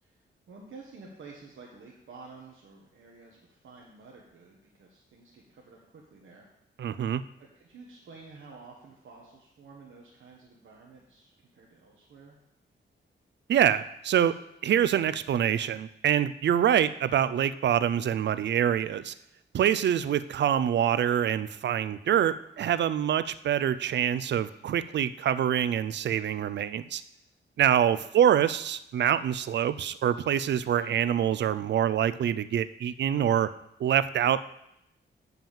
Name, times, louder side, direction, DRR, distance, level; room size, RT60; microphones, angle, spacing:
voice 1, 0.0-6.5 7.4-12.4 27.7-28.1, right 4 dB, 80° right, -2 dB, 1.4 m, -51 dB
voice 2, 6.8-7.2 13.5-14.4 14.6-19.1 19.5-27.0 27.6-33.5 33.8-34.4, right 9 dB, 65° right, 15 dB, 0.4 m, -25 dB
7.0 x 5.8 x 7.3 m, 0.81 s
wide cardioid pair, 135°, 20 cm